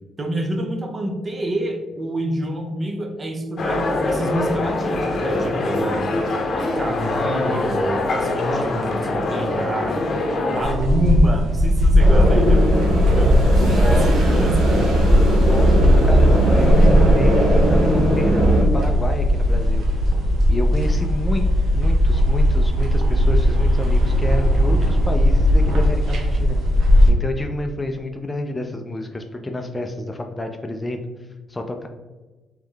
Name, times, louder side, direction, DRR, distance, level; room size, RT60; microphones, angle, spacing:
voice 1, 0.2-6.2 6.5-12.8 13.1-14.9, right 1 dB, 30° right, 4 dB, 0.7 m, -27 dB
sound 1, 3.6-10.7, left 2 dB, 50° left, 0.8 m, -23 dB
sound 2, 10.6-27.1, equal, 70° right, 0.8 m, -17 dB
sound 3, 12.0-18.6, equal, 90° right, 1.3 m, -18 dB
voice 2, 13.6-14.5 15.4-19.8 20.5-21.5 21.7-26.6 27.1-31.0 31.5-31.9, left 1 dB, 20° left, 4 dB, 0.4 m, -29 dB
3.6 x 3.1 x 3.3 m, 1.2 s
cardioid pair, 90°, 0 cm